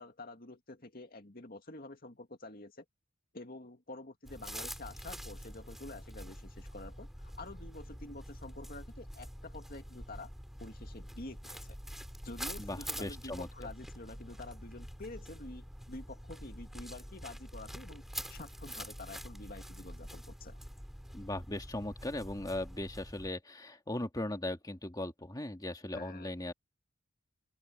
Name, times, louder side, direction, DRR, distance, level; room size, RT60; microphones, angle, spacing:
voice 1, 0.0-2.8 3.3-10.3 10.6-11.8 12.2-18.0 18.3-20.6 25.9-26.3, left 2 dB, 45° left, 2.3 m, -48 dB
sound 1, 4.2-23.3, equal, ahead, 2.5 m, -46 dB
voice 2, 12.6-13.5 21.1-26.5, left 1 dB, 20° left, 2.1 m, -38 dB
open air
head